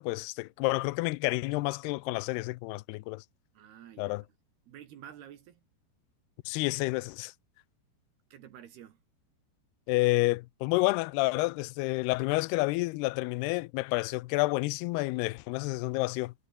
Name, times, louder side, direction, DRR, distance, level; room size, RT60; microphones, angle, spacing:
voice 1, 0.0-3.2 4.0-4.2 6.5-7.3 9.9-16.3, left 22 dB, 85° left, 2.4 m, -29 dB
voice 2, 3.6-4.2 4.7-5.6 8.3-9.0, right 10 dB, 70° right, 3.5 m, -50 dB
omnidirectional pair, 5.2 m